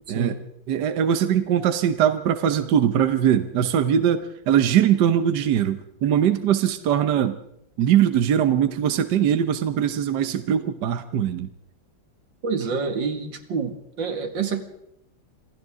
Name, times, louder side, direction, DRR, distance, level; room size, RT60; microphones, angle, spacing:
voice 1, 0.1-0.4 0.7-7.4 7.8-11.5, right 9 dB, 70° right, 9 dB, 1.5 m, -21 dB
voice 2, 12.4-14.6, right 5 dB, 90° right, 6 dB, 2.7 m, -27 dB
27.0 x 27.0 x 3.7 m, 0.80 s
omnidirectional pair, 2.0 m